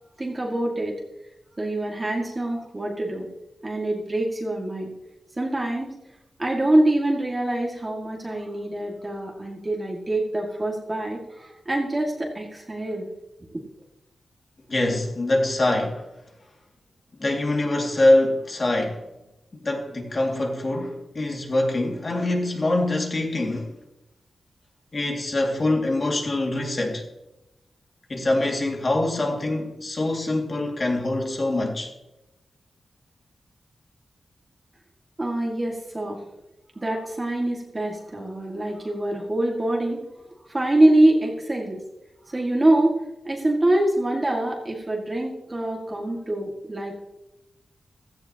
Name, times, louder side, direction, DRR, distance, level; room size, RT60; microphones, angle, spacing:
voice 1, 0.2-0.9 1.6-3.3 3.6-4.9 5.4-5.9 6.4-13.1 35.2-36.2 36.8-40.0 40.5-41.8 42.3-43.0 43.2-47.0, right 1 dB, 20° right, 1.9 m, -24 dB
voice 2, 14.7-16.0 17.2-19.0 19.6-23.7 24.9-27.1 28.1-31.9, left 2 dB, 35° left, 2.2 m, -24 dB
16.0 x 14.5 x 2.9 m
wide cardioid pair, 135°, 0 cm